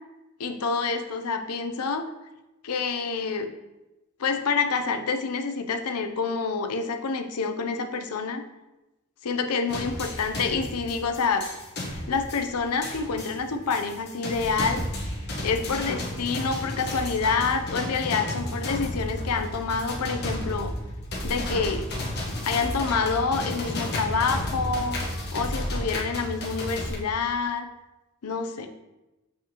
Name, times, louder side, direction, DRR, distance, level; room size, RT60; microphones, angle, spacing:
voice 1, 0.4-2.1 2.6-3.5 4.2-8.4 9.2-11.5 11.9-14.8 15.4-20.7 21.2-21.9 22.5-25.0 25.3-27.7 28.2-28.7, left 5 dB, 85° left, 7 dB, 0.6 m, -27 dB
sound 1, 9.7-27.0, left 1 dB, 50° left, 1.3 m, -32 dB
7.2 x 4.8 x 3.0 m, 1.0 s
head